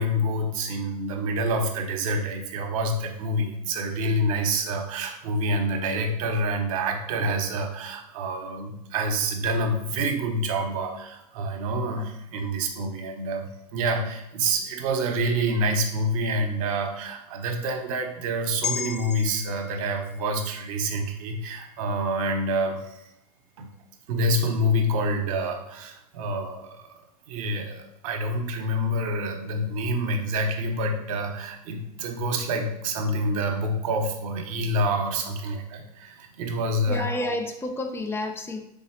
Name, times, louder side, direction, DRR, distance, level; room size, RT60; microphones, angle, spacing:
voice 1, 0.0-23.1 23.6-23.7 24.1-27.0 27.3-37.1, right 1 dB, 60° right, 4 dB, 0.8 m, -27 dB
sound 1, 18.6-23.1 23.5-23.7, left 8 dB, 80° left, 0.4 m, -38 dB
voice 2, 36.9-38.6, left 2 dB, 10° left, 6 dB, 0.5 m, -30 dB
3.9 x 3.8 x 2.8 m, 0.86 s
hypercardioid pair, 95°, 20 cm